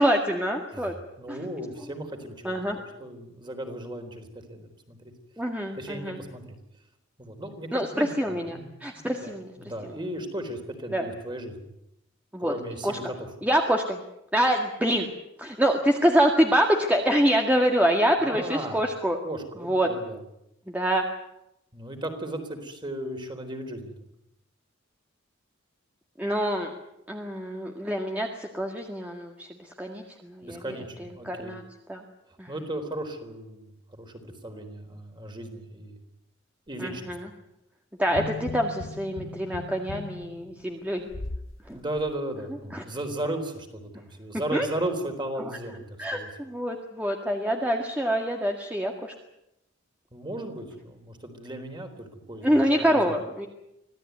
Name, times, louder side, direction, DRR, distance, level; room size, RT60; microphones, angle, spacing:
voice 1, 0.0-0.9 1.3-1.4 2.4-2.8 5.4-6.2 7.7-9.5 10.9-11.0 12.3-12.5 12.8-13.0 13.4-14.0 14.3-15.1 15.4-19.2 19.6-19.9 20.7-21.0 26.2-26.7 27.1-29.5 29.8-30.7 31.0-31.6 31.9-32.0 32.4-32.5 36.8-37.3 38.0-41.1 41.7-41.8 42.7-42.8 44.5-44.7 46.0-49.1 52.4-53.5, equal, 10° right, 2 dB, 1.9 m, -25 dB
voice 2, 0.7-2.6 3.0-5.1 5.8-6.6 7.2-11.6 12.4-13.1 18.2-18.8 19.2-20.2 21.7-23.9 30.4-31.6 32.5-33.7 34.0-36.0 36.7-37.1 41.7-45.8 46.1-46.3 50.1-53.1, right 1 dB, 25° right, 5 dB, 4.0 m, -36 dB
sound 1, 38.1-41.5 42.0-42.1, left 3 dB, 75° left, 1.1 m, -38 dB
25.5 x 17.0 x 9.5 m, 0.84 s
head